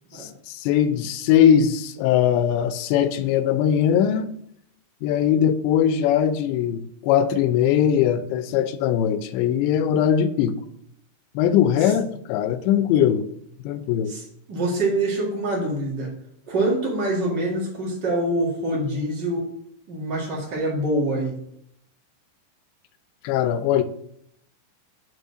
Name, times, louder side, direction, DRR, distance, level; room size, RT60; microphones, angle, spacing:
voice 1, 0.1-4.3 5.0-10.6 11.4-13.2 13.6-14.1 23.2-23.8, left 9 dB, 80° left, 11 dB, 2.8 m, -20 dB
voice 2, 14.5-16.1 16.5-19.4 19.9-21.3, right 1 dB, 85° right, -3 dB, 0.9 m, -25 dB
6.4 x 5.3 x 6.2 m, 0.71 s
omnidirectional pair, 5.3 m